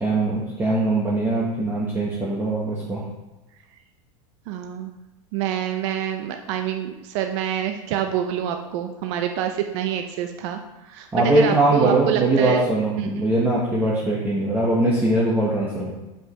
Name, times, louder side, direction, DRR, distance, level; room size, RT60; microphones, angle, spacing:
voice 1, 0.0-3.0 11.1-15.9, right 2 dB, 10° right, -6 dB, 1.5 m, -21 dB
voice 2, 4.5-4.9 5.3-10.6 10.9-12.6 13.0-13.1, right 10 dB, 55° right, 5 dB, 0.8 m, -26 dB
5.4 x 5.4 x 6.5 m, 1.0 s
supercardioid pair, 135°, 18 cm